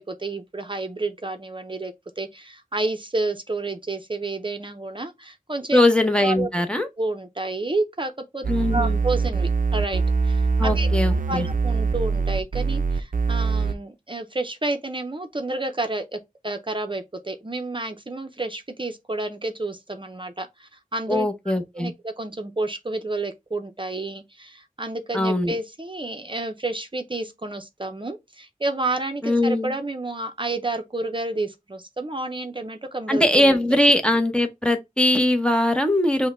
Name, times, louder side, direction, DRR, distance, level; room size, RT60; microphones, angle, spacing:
voice 1, 0.0-5.8 6.2-6.5 7.0-8.4 8.7-10.9 11.3-21.3 21.7-33.6, right 2 dB, 35° right, 0.6 m, -30 dB
voice 2, 5.7-6.9 8.5-9.0 10.6-11.5 21.1-21.9 25.1-25.5 29.2-29.7 33.1-36.3, left 1 dB, 5° left, 0.8 m, -21 dB
sound 1, 8.4-13.7, right 4 dB, 75° right, 0.5 m, -23 dB
5.4 x 2.2 x 4.3 m
wide cardioid pair, 40°, 14 cm